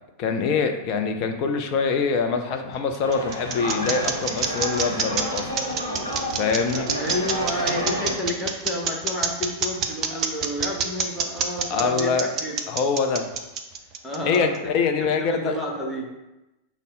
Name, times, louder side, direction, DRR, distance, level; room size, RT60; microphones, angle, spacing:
voice 1, 0.2-5.5 6.3-6.9 11.7-12.3 12.7-13.3 14.2-15.5, left 5 dB, 40° left, 5 dB, 0.5 m, -24 dB
sound 1, 2.5-14.6, right 6 dB, 35° right, 0.4 m, -27 dB
sound 2, 3.0-8.1, equal, 90° left, 0.8 m, -30 dB
voice 2, 6.7-12.6 14.0-16.1, left 1 dB, 5° left, -3 dB, 0.7 m, -30 dB
5.2 x 2.1 x 3.8 m, 1.0 s
figure-of-eight pair, 90°, 0 cm